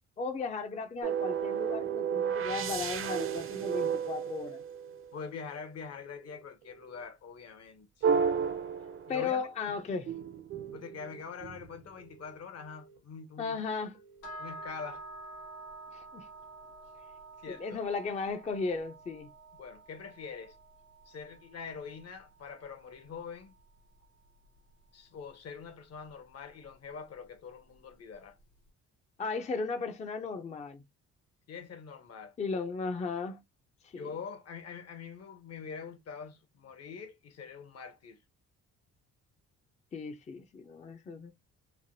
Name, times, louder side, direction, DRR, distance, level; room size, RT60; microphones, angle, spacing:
voice 1, 0.2-4.6 9.1-10.1 13.4-14.0 15.9-16.3 17.6-19.3 29.2-30.8 32.4-33.4 33.8-34.1 39.9-41.3, left 4 dB, 25° left, 0.4 m, -35 dB
sound 1, 1.0-5.2 8.0-9.5 10.1-11.8, right 7 dB, 45° right, 0.5 m, -32 dB
sound 2, 4.6-5.0 6.0-7.0 8.0-9.0 10.0-11.0 12.0-13.0 13.9-15.0, right 5 dB, 75° right, 0.9 m, -58 dB
voice 2, 5.1-8.1 9.1-9.4 10.7-13.6 14.4-15.0 17.4-17.8 19.6-20.6 21.1-23.6 24.9-28.4 31.5-32.4 33.9-38.2, left 6 dB, 55° left, 0.8 m, -44 dB
sound 3, 14.2-24.3, right 2 dB, 85° left, 1.3 m, -49 dB
3.2 x 2.2 x 2.6 m
cardioid pair, 90°, 30 cm